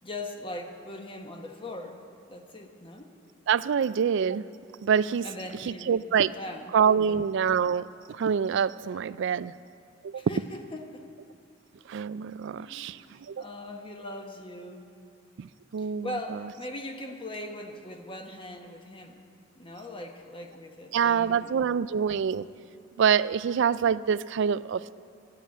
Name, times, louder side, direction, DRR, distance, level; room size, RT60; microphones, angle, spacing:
voice 1, 0.0-3.2 5.2-6.0 6.3-6.8 7.1-7.3 10.1-11.1 12.6-14.9 15.8-19.3 19.6-21.7, left 1 dB, 25° left, 4 dB, 1.1 m, -40 dB
voice 2, 3.5-4.4 4.8-5.3 5.7-6.3 6.7-9.5 10.0-10.1 11.9-13.0 13.3-13.4 15.4-15.5 15.7-16.1 20.9-22.5 23.0-24.9, right 7 dB, 65° right, 17 dB, 0.3 m, -25 dB
12.5 x 10.5 x 8.3 m, 2.4 s
head